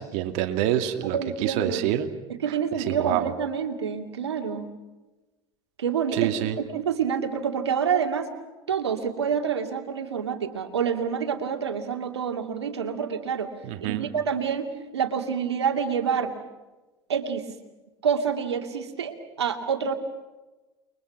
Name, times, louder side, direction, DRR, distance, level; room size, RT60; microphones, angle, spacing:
voice 1, 0.0-2.1 2.5-3.3 6.1-6.6 13.6-14.1, right 12 dB, 60° right, 7 dB, 2.3 m, -27 dB
voice 2, 1.1-1.8 2.4-4.7 5.8-6.3 6.7-8.3 8.7-13.5 13.8-16.3 17.1-17.5 18.0-19.9, right 7 dB, 90° right, 5 dB, 2.5 m, -27 dB
29.5 x 23.0 x 6.0 m, 1.1 s
hypercardioid pair, 80°, 14 cm